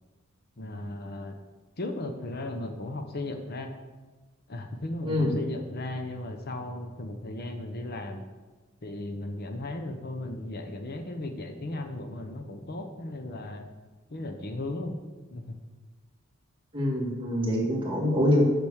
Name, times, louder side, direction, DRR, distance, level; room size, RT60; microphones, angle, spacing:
voice 1, 0.6-1.4 1.8-3.7 4.5-8.2 8.8-13.7 14.1-15.0 15.3-15.6, left 2 dB, 45° left, 5 dB, 0.8 m, -36 dB
voice 2, 16.7-18.4, left 1 dB, 25° right, -2 dB, 2.0 m, -25 dB
8.7 x 6.1 x 6.3 m, 1.3 s
head